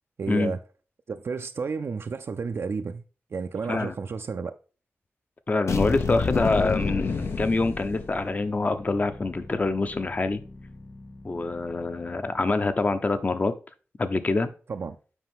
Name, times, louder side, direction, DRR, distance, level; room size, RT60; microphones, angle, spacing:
voice 1, 0.2-0.6 1.1-3.0 3.3-4.6 14.7-15.0, right 5 dB, 60° right, 0.4 m, -31 dB
voice 2, 5.5-10.4 11.2-13.5 14.0-14.5, left 3 dB, 35° left, 0.6 m, -25 dB
sound 1, 5.7-8.4, left 5 dB, 90° left, 0.8 m, -28 dB
sound 2, 7.0-13.4, left 2 dB, 60° left, 3.0 m, -45 dB
8.1 x 5.2 x 3.5 m
wide cardioid pair, 140°, 5 cm